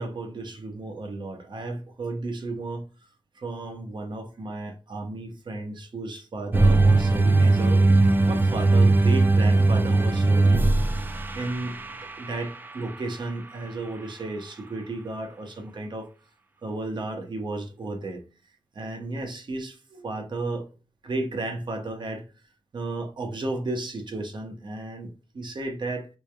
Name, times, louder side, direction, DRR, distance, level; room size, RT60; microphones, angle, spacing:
voice 1, 0.0-2.9 3.3-10.9 11.3-16.1 16.6-18.2 18.7-20.7 21.0-22.2 22.7-26.1, right 2 dB, 60° right, 0.9 m, -33 dB
sound 1, 6.5-12.9, right 2 dB, 20° right, 0.4 m, -20 dB
4.3 x 3.3 x 2.2 m
wide cardioid pair, 145°, 9 cm